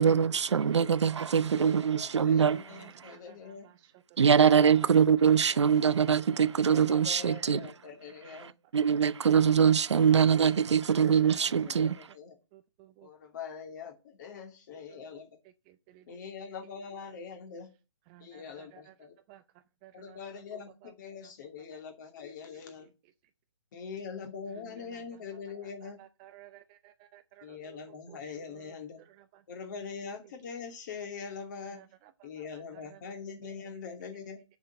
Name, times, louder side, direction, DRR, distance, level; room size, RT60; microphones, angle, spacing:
voice 1, 0.0-2.6 4.2-7.6 8.7-12.0, right 7 dB, 70° right, 0.6 m, -23 dB
voice 2, 1.5-3.7 4.3-4.6 6.7-8.5 10.4-10.6 11.0-12.4 13.0-15.3 16.1-17.7 18.2-19.1 19.9-22.9 23.7-26.0 27.4-29.0 29.5-31.8 32.2-34.4, left 6 dB, 40° left, 2.6 m, -43 dB
voice 3, 10.8-11.1 11.5-11.9 12.5-13.1 14.9-15.2 15.7-16.0 18.1-18.9 19.3-19.4 19.8-20.2 26.2-27.8 28.1-28.2 31.6-31.7 32.9-33.0 33.4-33.5, right 15 dB, 20° right, 0.4 m, -55 dB
7.1 x 6.1 x 7.6 m
hypercardioid pair, 150°, 15 cm